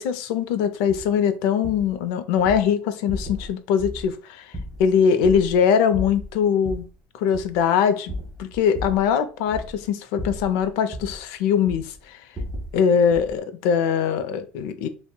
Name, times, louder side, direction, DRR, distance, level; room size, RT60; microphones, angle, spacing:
voice 1, 0.0-4.5 4.8-6.9 7.1-8.1 8.4-12.2 12.7-14.9, left 7 dB, 75° left, 0.4 m, -22 dB
sound 1, 0.9-1.1 1.6-1.9 2.4-2.6 3.1-3.5 3.8-4.1 4.5-5.6 5.9-6.9 7.3-7.6 8.1-9.1 9.5-9.9 10.2-11.2 11.7-12.0 12.3-12.8 13.1-13.4, equal, 15° right, 0.8 m, -35 dB
3.7 x 2.1 x 2.2 m
supercardioid pair, 115°, 5 cm